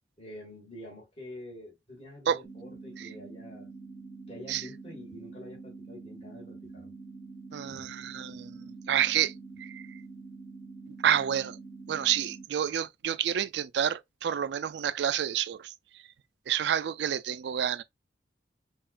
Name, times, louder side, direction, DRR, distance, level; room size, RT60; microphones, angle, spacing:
voice 1, 0.2-3.7 4.3-6.9, left 1 dB, 35° left, 1.6 m, -47 dB
sound 1, 2.4-12.4, right 3 dB, 15° left, 1.1 m, -46 dB
voice 2, 7.5-9.3 9.6-9.8 11.0-11.6 11.9-15.7 16.5-17.8, right 9 dB, 70° right, 0.3 m, -29 dB
5.6 x 2.4 x 2.4 m
head